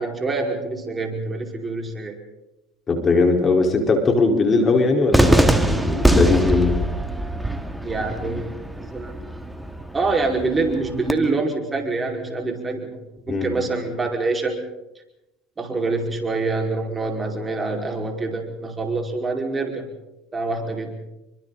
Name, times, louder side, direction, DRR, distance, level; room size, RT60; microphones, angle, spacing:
voice 1, 0.0-2.2 7.8-9.2 9.9-13.0 13.3-14.6 15.6-19.8 20.3-20.9, right 3 dB, 20° right, 2 dB, 5.3 m, -25 dB
voice 2, 2.9-6.7 13.3-13.5, left 3 dB, 30° left, 3 dB, 4.7 m, -19 dB
Cheering / Fireworks, 5.1-11.1, right 1 dB, 5° right, 2.4 m, -22 dB
29.5 x 24.5 x 4.2 m, 0.91 s
supercardioid pair, 90°, 0 cm